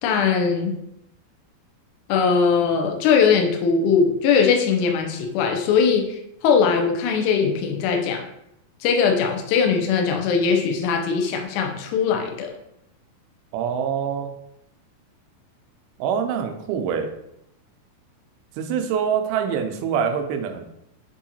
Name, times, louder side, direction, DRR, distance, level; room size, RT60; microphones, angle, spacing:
voice 1, 0.0-0.7 2.1-8.2 8.8-12.5, left 6 dB, 90° left, 3 dB, 1.7 m, -20 dB
voice 2, 13.5-14.3 16.0-17.1 18.6-20.6, right 7 dB, 90° right, 5 dB, 2.4 m, -25 dB
7.0 x 2.8 x 2.7 m, 0.79 s
omnidirectional pair, 4.2 m